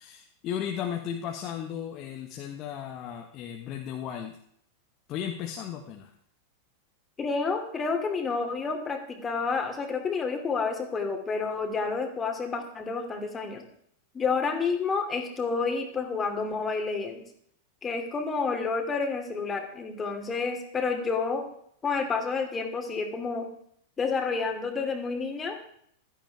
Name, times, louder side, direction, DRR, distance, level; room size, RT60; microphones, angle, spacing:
voice 1, 0.0-4.3 5.1-6.1, left 9 dB, 35° left, 2 dB, 1.5 m, -35 dB
voice 2, 7.2-13.6 14.1-17.2 17.8-21.5 21.8-23.5 24.0-25.6, left 4 dB, 20° left, 4 dB, 2.9 m, -29 dB
16.0 x 13.0 x 3.6 m, 0.67 s
figure-of-eight pair, 90°, 0 cm